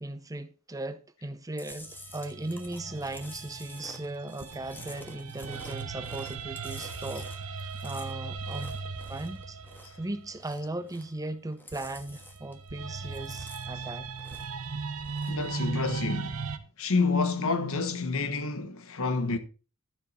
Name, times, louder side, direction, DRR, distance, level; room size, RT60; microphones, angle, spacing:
voice 1, 0.0-8.8 9.1-9.6 10.0-14.1, right 2 dB, 15° right, 0.7 m, -38 dB
Chewing mastication, 1.6-10.0 10.3-11.3 11.5-12.7 12.9-14.6 15.0-15.4, left 1 dB, 10° left, 1.4 m, -49 dB
sound 1, 1.7-10.9 11.7-16.6, right 4 dB, 75° right, 1.0 m, -38 dB
voice 2, 15.3-16.4 16.8-19.4, left 4 dB, 65° left, 1.2 m, -28 dB
12.5 x 7.2 x 4.1 m
head